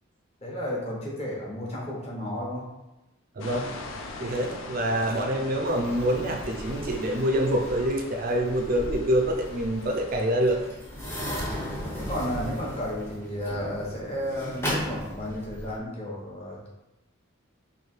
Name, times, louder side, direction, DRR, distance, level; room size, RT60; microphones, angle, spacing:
voice 1, 0.4-2.7 12.0-16.7, equal, 30° left, -4 dB, 1.0 m, -33 dB
sound 1, 3.4-10.7, left 3 dB, 75° left, 0.5 m, -42 dB
voice 2, 3.4-3.7 4.2-10.6, right 1 dB, 45° right, 3 dB, 0.4 m, -26 dB
sound 2, 5.7-15.8, equal, 10° left, 0.7 m, -36 dB
3.2 x 2.7 x 4.4 m, 0.97 s
head